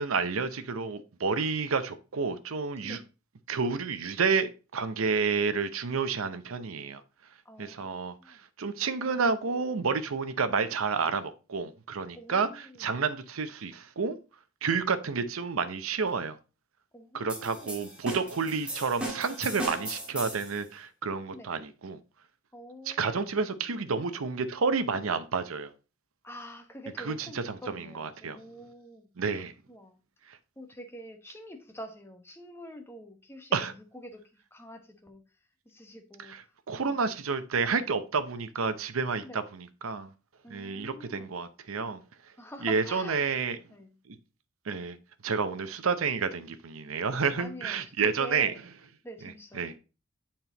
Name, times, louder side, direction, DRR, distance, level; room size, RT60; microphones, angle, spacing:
voice 1, 0.0-3.0 3.5-7.0 7.6-14.2 14.6-16.4 17.1-22.0 22.9-25.7 27.0-28.4 29.2-29.5 33.5-33.7 36.3-36.4 36.7-40.1 40.5-42.0 42.6-43.6 44.1-44.2 44.7-45.0 45.2-48.5 49.5-49.7, right 5 dB, 90° right, 0.7 m, -30 dB
voice 2, 7.4-8.4 12.1-12.8 16.9-17.8 21.3-21.5 22.5-23.3 26.2-30.0 30.6-35.2 35.6-37.0 39.2-39.5 40.4-41.3 42.3-43.3 43.7-43.9 47.4-48.6 49.0-49.8, equal, 10° left, 1.1 m, -46 dB
sound 1, 17.3-20.6, right 1 dB, 5° right, 1.9 m, -37 dB
7.7 x 4.4 x 3.9 m
head